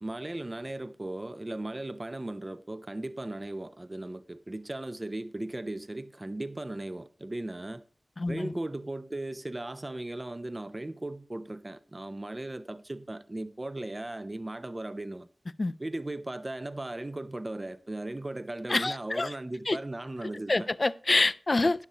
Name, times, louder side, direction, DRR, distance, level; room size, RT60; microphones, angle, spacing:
voice 1, 0.0-7.8 8.3-15.3 15.8-20.7, right 2 dB, 35° right, 0.5 m, -37 dB
voice 2, 8.2-8.5 15.6-15.7 18.7-19.3 19.7-19.8 20.5-21.8, left 2 dB, 55° left, 0.4 m, -26 dB
12.0 x 10.0 x 2.9 m
cardioid pair, 40°, 0 cm